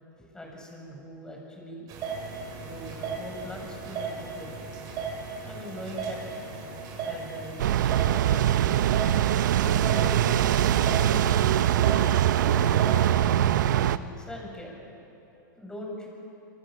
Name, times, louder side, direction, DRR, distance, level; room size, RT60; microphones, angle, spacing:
voice 1, 0.2-1.9 2.6-4.7 5.4-6.2 7.0-8.8 9.6-13.1 13.7-14.8 15.6-16.1, left 1 dB, 5° left, -1 dB, 7.3 m, -42 dB
sound 1, 1.9-13.1, right 4 dB, 35° right, 7.0 m, -36 dB
sound 2, 7.6-14.0, right 11 dB, 70° right, 0.9 m, -22 dB
26.5 x 25.0 x 7.7 m, 2.9 s
hypercardioid pair, 125°, 10 cm